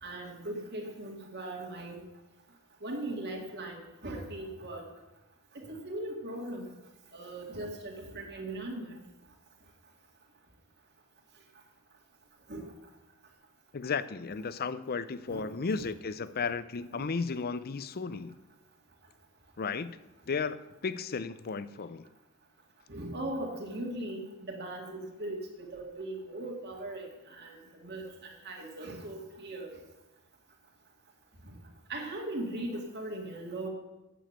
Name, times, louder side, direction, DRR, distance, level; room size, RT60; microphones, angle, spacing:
voice 1, 0.0-2.0 2.8-4.8 5.5-6.7 7.1-9.0 12.5-12.6 15.3-15.4 15.7-15.9 16.9-17.1 22.9-28.0 28.4-29.7 31.9-33.7, right 1 dB, 50° right, 0 dB, 2.2 m, -39 dB
voice 2, 13.7-18.3 19.6-19.9 20.3-22.0, left 5 dB, 45° left, 15 dB, 0.5 m, -34 dB
9.1 x 7.1 x 8.1 m, 1.1 s
head